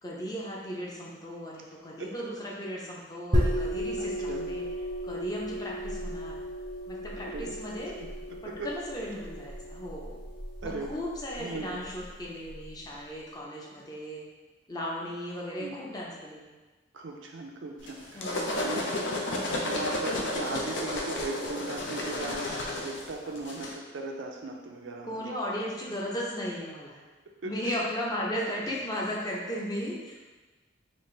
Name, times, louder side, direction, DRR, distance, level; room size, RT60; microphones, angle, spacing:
voice 1, 0.0-4.7 5.0-6.4 6.9-7.9 8.4-10.1 10.6-14.2 14.7-16.5 18.1-18.6 25.1-27.0 27.4-30.3, equal, 20° left, -4 dB, 0.6 m, -36 dB
sound 1, 3.3-12.7, equal, 25° right, 0.6 m, -34 dB
voice 2, 4.0-4.5 7.2-7.5 8.0-8.7 10.6-11.0 11.4-11.8 15.6-15.8 16.9-18.3 18.6-19.2 19.4-25.3 27.4-27.8, right 2 dB, 80° right, 1 dB, 0.5 m, -38 dB
sound 2, 17.9-23.7, left 1 dB, 75° left, 0.6 m, -32 dB
4.2 x 2.5 x 3.2 m, 1.3 s
head